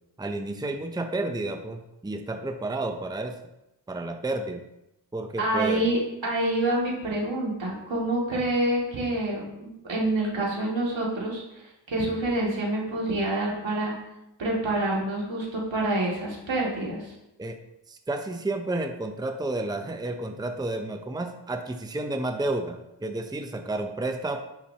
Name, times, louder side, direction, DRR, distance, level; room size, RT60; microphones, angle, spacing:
voice 1, 0.2-3.3 3.9-4.6 5.1-5.9 17.4-17.6 17.9-24.4, right 2 dB, 10° right, 6 dB, 0.7 m, -31 dB
voice 2, 5.4-13.9 14.4-17.1, right 1 dB, 80° right, -4 dB, 2.5 m, -27 dB
10.0 x 5.8 x 2.9 m, 0.89 s
cardioid pair, 60°, 44 cm